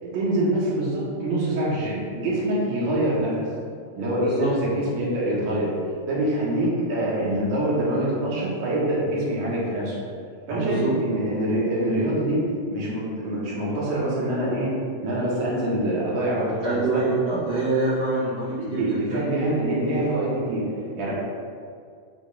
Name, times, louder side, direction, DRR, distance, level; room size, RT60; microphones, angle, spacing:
voice 1, 0.0-3.5 4.0-5.7 6.1-10.0 10.5-12.4 12.7-14.7 15.0-17.0 18.6-20.7 21.0-21.1, right 1 dB, 60° right, -6 dB, 2.2 m, -25 dB
voice 2, 4.2-4.5 10.5-10.9 16.6-19.2, right 3 dB, 80° right, -11 dB, 1.4 m, -25 dB
10.5 x 3.8 x 2.4 m, 2.2 s
omnidirectional pair, 4.5 m